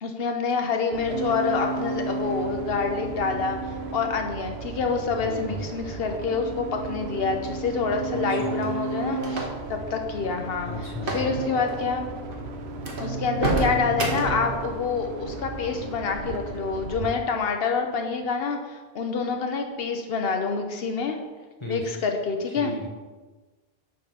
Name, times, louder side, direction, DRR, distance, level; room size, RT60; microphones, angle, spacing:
voice 1, 0.0-10.7 11.1-12.1 13.0-21.2 21.7-22.7, left 5 dB, 70° left, 4 dB, 1.0 m, -27 dB
sound 1, 0.9-17.1, right 3 dB, 90° right, 0.9 m, -33 dB
voice 2, 5.2-5.7 8.1-8.7 10.7-11.2 13.7-14.0 21.6-21.9 22.6-22.9, equal, 30° left, -1 dB, 1.0 m, -35 dB
sound 2, 8.4-9.8 11.0-11.3 11.6-11.8 12.3-12.4 12.8-14.5, right 2 dB, 60° right, 1.2 m, -29 dB
7.5 x 3.8 x 5.8 m, 1.3 s
omnidirectional pair, 1.1 m